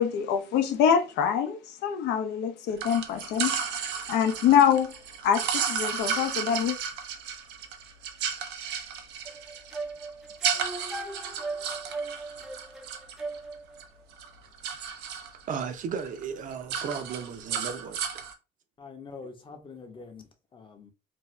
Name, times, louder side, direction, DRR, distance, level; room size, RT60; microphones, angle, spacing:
voice 1, 0.0-3.5 4.1-4.9 5.2-6.8, left 8 dB, 85° left, 0.6 m, -24 dB
sound 1, 2.8-13.8 14.1-15.7 16.0-16.2 16.5-18.3, right 7 dB, 90° right, 0.6 m, -33 dB
sound 2, 9.3-13.8, right 2 dB, 5° right, 0.4 m, -37 dB
voice 2, 15.5-18.2, right 6 dB, 50° right, 0.6 m, -35 dB
voice 3, 18.8-20.9, left 4 dB, 30° left, 0.7 m, -45 dB
2.6 x 2.3 x 3.1 m
cardioid pair, 110°, 17 cm